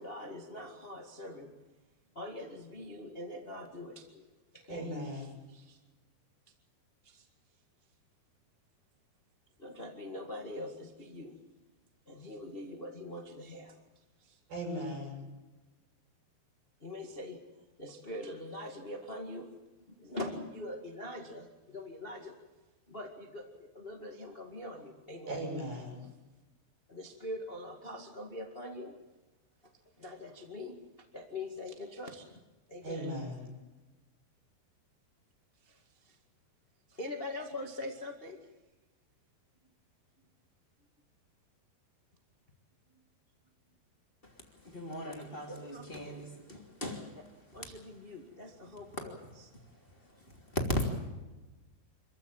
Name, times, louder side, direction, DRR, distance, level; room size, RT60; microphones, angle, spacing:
voice 1, 0.0-1.5 2.1-4.3 4.5-5.8 7.0-7.2 9.6-11.4 12.1-13.8 14.2-14.4 16.8-19.5 19.9-22.4 22.9-25.5 26.0-26.1 26.9-29.0 29.6-29.7 30.0-32.4 32.7-33.1 35.6-36.2 36.9-38.4 42.9-43.0 44.9-46.2 47.1-47.3 47.5-49.5, left 1 dB, 35° left, 3 dB, 0.9 m, -43 dB
voice 2, 4.7-5.3 14.5-15.2 25.3-26.0 32.8-33.5, equal, 60° right, -2 dB, 8.9 m, -38 dB
voice 3, 44.6-47.2 50.5-50.9, left 1 dB, 15° left, 1 dB, 2.5 m, -36 dB
26.0 x 15.0 x 8.9 m, 1.1 s
omnidirectional pair, 4.9 m